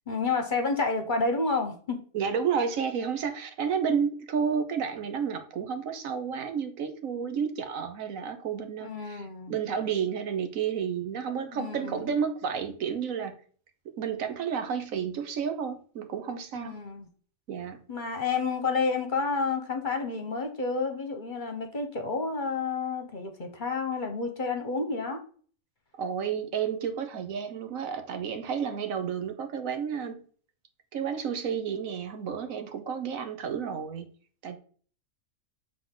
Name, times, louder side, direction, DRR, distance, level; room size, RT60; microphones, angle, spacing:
voice 1, 0.1-2.0 8.8-9.5 11.5-12.1 16.6-17.1 17.9-25.2, left 4 dB, 40° left, 1.1 m, -30 dB
voice 2, 2.1-13.4 14.0-16.8 17.5-17.8 26.0-30.2 30.9-34.1 34.4-34.6, right 7 dB, 85° right, 1.3 m, -31 dB
7.7 x 3.7 x 3.8 m
omnidirectional pair, 1.4 m